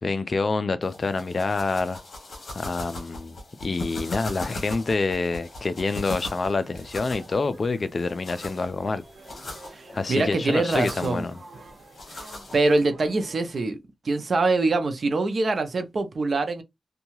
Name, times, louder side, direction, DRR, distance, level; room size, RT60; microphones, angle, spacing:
voice 1, 0.0-2.0 2.5-9.0 9.4-9.5 9.9-11.4, left 3 dB, 45° left, 0.3 m, -27 dB
sound 1, 0.8-12.8, left 2 dB, 65° left, 0.9 m, -40 dB
sound 2, 5.3-13.6, right 3 dB, 75° right, 1.1 m, -49 dB
voice 2, 9.7-11.3 12.1-13.8 14.0-16.6, right 3 dB, 55° right, 0.5 m, -24 dB
2.7 x 2.2 x 2.9 m
wide cardioid pair, 135°, 0 cm